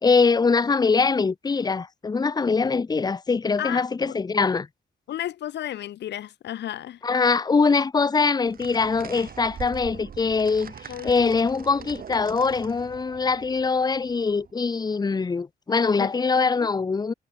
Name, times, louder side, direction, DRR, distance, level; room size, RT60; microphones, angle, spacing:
voice 1, 0.0-4.7 7.0-17.1, left 4 dB, 25° left, 0.7 m, -23 dB
voice 2, 3.6-4.2 5.1-7.0 10.9-11.4 16.0-16.1 16.4-16.7, left 12 dB, 85° left, 0.5 m, -33 dB
sound 1, 8.4-14.5, right 7 dB, 55° right, 6.2 m, -42 dB
wide cardioid pair, 155°, 17 cm